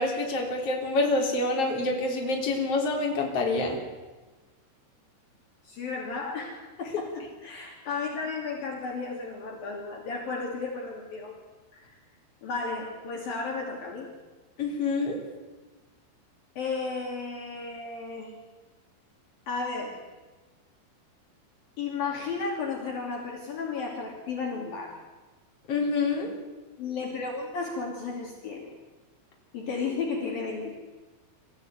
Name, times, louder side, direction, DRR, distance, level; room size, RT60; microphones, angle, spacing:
voice 1, 0.0-3.8 14.6-15.2 25.7-26.3, left 2 dB, 35° left, 0 dB, 4.3 m, -27 dB
voice 2, 5.6-11.4 11.7-12.0 12.4-14.1 16.6-18.3 19.5-20.0 21.8-25.0 26.8-28.7 29.5-30.8, left 4 dB, 55° left, 0 dB, 4.3 m, -33 dB
24.5 x 15.0 x 9.5 m, 1.2 s
omnidirectional pair, 5.1 m